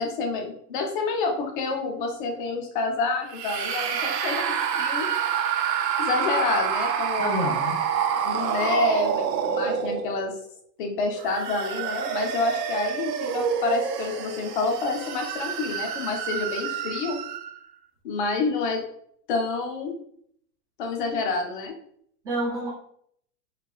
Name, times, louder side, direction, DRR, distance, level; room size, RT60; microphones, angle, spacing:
voice 1, 0.0-5.1 6.0-7.5 8.2-10.3 10.8-17.2 18.0-18.8 19.3-19.9 20.8-21.7, left 3 dB, 35° left, 2 dB, 0.4 m, -28 dB
sound 1, 3.3-10.4 11.1-17.6, right 8 dB, 85° right, 0.6 m, -28 dB
voice 2, 7.2-7.9 22.2-22.7, right 1 dB, 10° right, -7 dB, 0.6 m, -28 dB
3.1 x 2.2 x 2.3 m, 0.66 s
hypercardioid pair, 145°, 48 cm